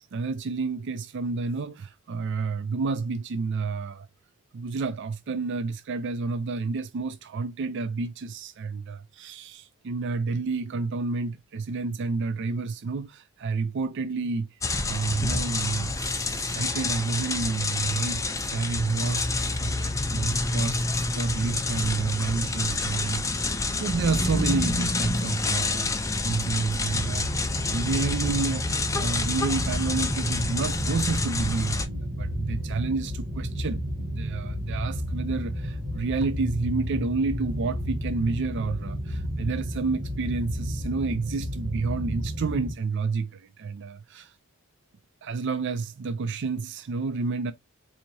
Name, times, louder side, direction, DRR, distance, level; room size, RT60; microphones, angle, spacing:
voice 1, 0.0-4.1 4.5-44.4 45.2-47.5, right 4 dB, 55° right, 0.4 m, -30 dB
sound 1, 14.6-31.9, left 2 dB, 15° left, 0.5 m, -28 dB
sound 2, 26.9-42.7, equal, 40° right, 1.3 m, -32 dB
4.5 x 2.8 x 2.6 m
head